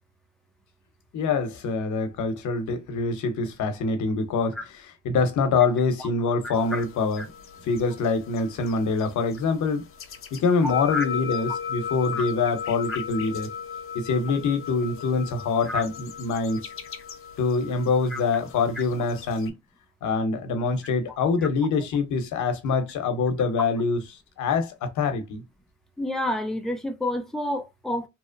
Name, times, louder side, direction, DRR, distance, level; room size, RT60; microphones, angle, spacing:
voice 1, 1.1-4.6 5.0-7.2 7.6-9.8 10.3-13.5 13.9-16.6 17.4-19.5 20.0-24.0 24.4-25.4, left 4 dB, 70° left, 0.8 m, -25 dB
voice 2, 6.4-6.8 7.2-7.3 10.6-11.0 12.1-12.3 12.9-13.0 15.7-15.8 18.1-18.2 26.0-28.1, left 1 dB, ahead, 0.5 m, -29 dB
sound 1, 6.5-19.5, left 7 dB, 45° left, 0.5 m, -37 dB
2.8 x 2.1 x 2.5 m
cardioid pair, 90°, 30 cm